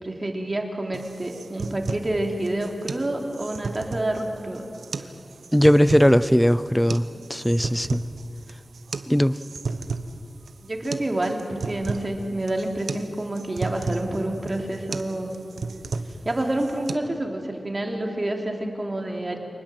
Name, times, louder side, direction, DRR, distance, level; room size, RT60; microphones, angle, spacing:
voice 1, 0.0-4.7 5.0-5.1 10.6-15.3 16.2-19.4, right 1 dB, 30° right, 2 dB, 3.1 m, -28 dB
sound 1, 0.9-16.9, right 4 dB, 85° right, 1.1 m, -34 dB
voice 2, 5.5-8.0 9.1-9.4, equal, 5° left, 16 dB, 0.6 m, -19 dB
25.5 x 20.0 x 7.8 m, 2.6 s
wide cardioid pair, 80°, 0 cm